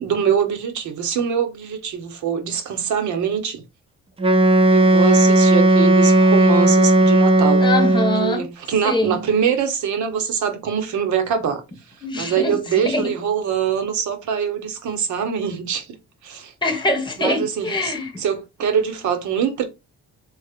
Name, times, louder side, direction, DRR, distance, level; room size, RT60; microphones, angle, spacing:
voice 1, 0.0-3.6 4.7-7.7 8.2-11.6 12.2-15.9 16.2-16.5 17.2-19.6, right 7 dB, 70° right, 0.9 m, -23 dB
Wind instrument woodwind instrument, 4.2-8.4, right 2 dB, 20° right, 0.5 m, -15 dB
voice 2, 7.6-8.5 8.8-9.2 12.0-13.1 16.6-18.1, left 1 dB, 15° left, 1.1 m, -23 dB
3.2 x 2.0 x 3.6 m
cardioid pair, 90°, 30 cm